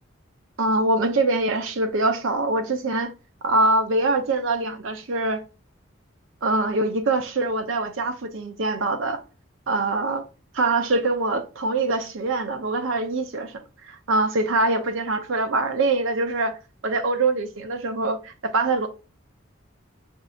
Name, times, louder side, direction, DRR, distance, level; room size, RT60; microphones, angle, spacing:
voice 1, 0.6-3.1 3.4-5.4 6.4-9.2 9.7-10.2 10.5-16.6 16.8-18.9, right 2 dB, 85° right, 0.7 m, -24 dB
5.8 x 2.7 x 2.4 m
head